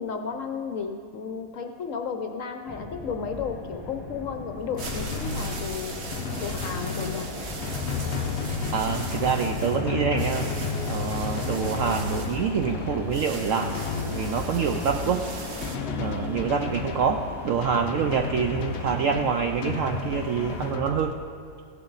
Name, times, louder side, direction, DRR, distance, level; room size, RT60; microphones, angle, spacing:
voice 1, 0.0-5.9 6.4-7.2, left 6 dB, 60° left, 5 dB, 0.9 m, -33 dB
sound 1, 2.7-20.7, left 2 dB, 15° left, 1.1 m, -37 dB
sound 2, 4.6-15.8, right 3 dB, 45° right, 1.2 m, -40 dB
Drum, 4.8-21.1, left 5 dB, 80° left, 0.5 m, -33 dB
voice 2, 8.7-13.7 14.0-15.2 16.0-21.2, right 6 dB, 75° right, 5 dB, 0.7 m, -26 dB
15.0 x 11.5 x 3.9 m, 2.4 s
omnidirectional pair, 1.9 m